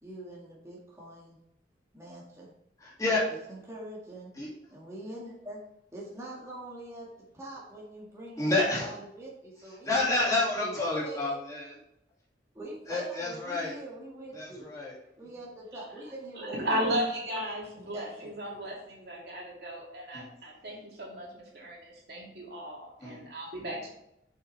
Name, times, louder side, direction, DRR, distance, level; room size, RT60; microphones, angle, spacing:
voice 1, 0.0-1.4 1.9-2.5 3.3-4.3 4.7-5.6 5.9-10.1 10.6-11.4 12.5-14.7 15.2-16.6 17.8-18.3, right 1 dB, 15° right, -5 dB, 1.9 m, -44 dB
voice 2, 2.8-3.2 4.3-4.5 8.4-8.9 9.8-11.7 12.9-13.7 14.3-15.0 20.1-20.3 23.0-23.2, left 2 dB, 20° left, -5 dB, 2.2 m, -29 dB
voice 3, 16.3-24.0, equal, 60° right, -3 dB, 2.7 m, -35 dB
7.7 x 6.7 x 3.3 m, 0.79 s
head